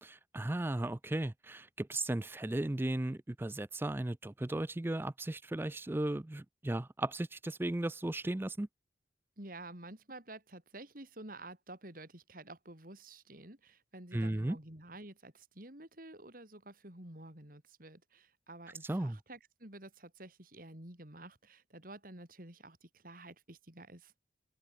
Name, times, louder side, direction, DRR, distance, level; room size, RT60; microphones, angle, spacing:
voice 1, 0.0-8.7 14.1-14.6 18.8-19.2, right 1 dB, 10° right, 0.4 m, -36 dB
voice 2, 9.4-24.1, right 2 dB, 50° right, 4.6 m, -50 dB
open air
head